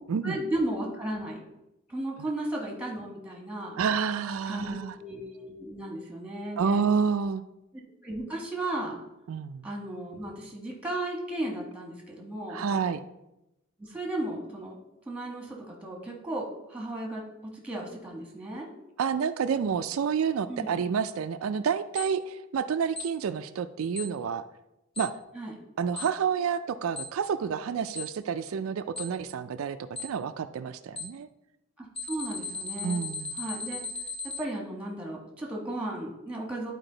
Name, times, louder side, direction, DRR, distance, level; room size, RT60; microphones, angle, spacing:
voice 1, 0.2-1.4 1.9-3.8 4.4-6.8 8.0-9.0 9.6-12.6 13.8-14.8 15.1-18.7 20.5-20.7 25.3-25.6 31.8-33.0 33.3-33.8 34.4-36.7, right 1 dB, 5° right, -1 dB, 1.3 m, -35 dB
voice 2, 3.8-5.0 6.6-7.4 9.3-9.7 12.5-13.0 19.0-24.4 25.0-25.1 25.8-31.3 32.8-33.4, right 6 dB, 75° right, 10 dB, 0.4 m, -29 dB
Alarm, 22.0-22.1 23.0-23.1 24.0-24.1 25.0-25.1 26.0-26.1 27.0-27.1 28.0-28.1 29.0-29.1 30.0-30.1 31.0-31.1 32.0-34.4, left 4 dB, 25° left, 0.8 m, -35 dB
11.0 x 4.5 x 3.9 m, 0.92 s
head